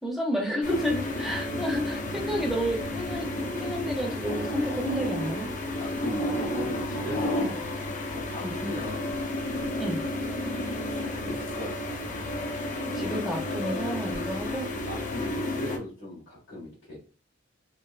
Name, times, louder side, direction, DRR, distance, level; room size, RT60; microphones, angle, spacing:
voice 1, 0.0-5.8 6.3-6.5 7.4-7.5 8.4-8.6 9.8-10.0 12.8-14.7, equal, ahead, 0 dB, 0.6 m, -31 dB
sound 1, 0.6-15.8, left 1 dB, 40° left, 0.5 m, -32 dB
voice 2, 5.8-7.7 8.1-9.2 10.9-12.0 14.4-17.0, left 1 dB, 80° left, -9 dB, 1.6 m, -38 dB
3.3 x 2.4 x 2.4 m, 0.37 s
head